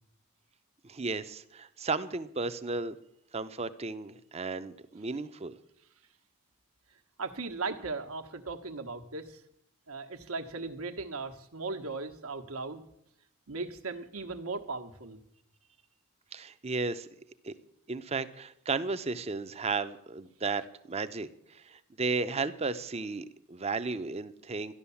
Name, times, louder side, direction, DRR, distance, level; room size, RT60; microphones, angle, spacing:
voice 1, 0.8-3.0 3.3-5.5 16.3-17.1 17.4-17.5 17.9-20.6 20.9-24.7, right 4 dB, 30° right, 12 dB, 0.6 m, -34 dB
voice 2, 7.2-9.4 9.9-12.8 13.5-15.2, right 3 dB, 80° right, 6 dB, 1.3 m, -37 dB
13.0 x 11.0 x 7.0 m, 0.74 s
head